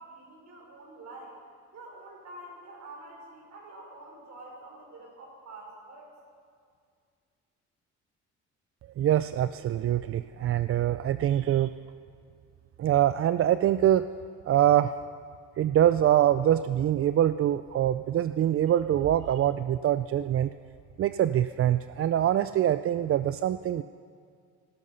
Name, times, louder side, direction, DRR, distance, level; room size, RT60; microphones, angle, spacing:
voice 1, 0.0-1.4 1.7-6.1, right 2 dB, 65° right, -1 dB, 5.3 m, -47 dB
voice 2, 9.0-11.7 12.8-14.1 14.5-14.9 15.6-20.5 21.0-23.8, right 11 dB, 50° right, 12 dB, 0.4 m, -24 dB
17.0 x 13.5 x 5.6 m, 2.2 s
cardioid pair, 90°, 30 cm